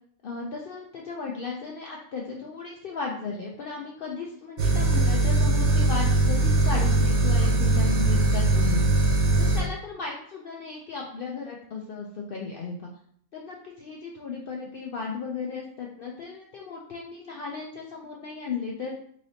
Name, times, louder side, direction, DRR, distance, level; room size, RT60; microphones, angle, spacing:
voice 1, 0.2-9.1 9.4-12.9 13.3-18.9, left 4 dB, 80° left, -1 dB, 0.5 m, -35 dB
sound 1, 4.6-9.6, right 2 dB, 75° right, 1.3 m, -21 dB
3.8 x 3.3 x 2.7 m, 0.64 s
omnidirectional pair, 1.5 m